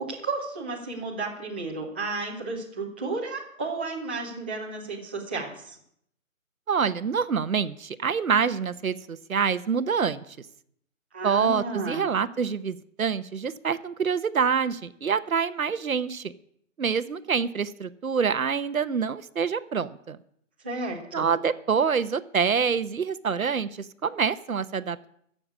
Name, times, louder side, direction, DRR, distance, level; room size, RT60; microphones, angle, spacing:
voice 1, 0.0-5.8 11.1-12.0 20.6-21.3, right 3 dB, 10° right, -6 dB, 0.9 m, -33 dB
voice 2, 6.7-10.2 11.2-16.3 16.8-20.2 21.1-23.7 24.0-25.1, right 6 dB, 80° right, 13 dB, 1.0 m, -26 dB
15.0 x 6.8 x 8.3 m, 0.71 s
hypercardioid pair, 170°, 41 cm